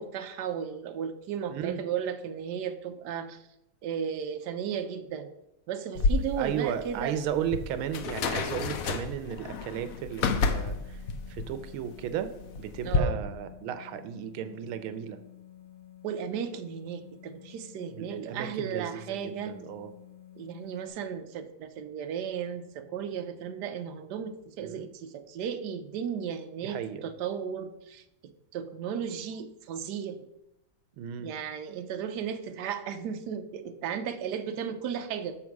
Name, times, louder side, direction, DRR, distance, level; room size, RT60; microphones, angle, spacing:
voice 1, 0.0-3.5 3.8-5.3 5.7-7.2 12.8-13.3 16.0-19.6 20.4-28.0 28.5-30.2 31.2-35.4, right 8 dB, 70° right, 8 dB, 1.0 m, -35 dB
sound 1, 5.9-13.0, left 4 dB, 80° left, 0.7 m, -31 dB
voice 2, 6.4-11.0 11.3-15.2 18.0-19.9 24.6-24.9 26.6-27.0 31.0-31.3, right 9 dB, 85° right, 11 dB, 1.5 m, -35 dB
sound 2, 9.4-20.9, left 12 dB, 30° left, 2.1 m, -51 dB
7.3 x 5.7 x 4.6 m, 0.87 s
omnidirectional pair, 2.3 m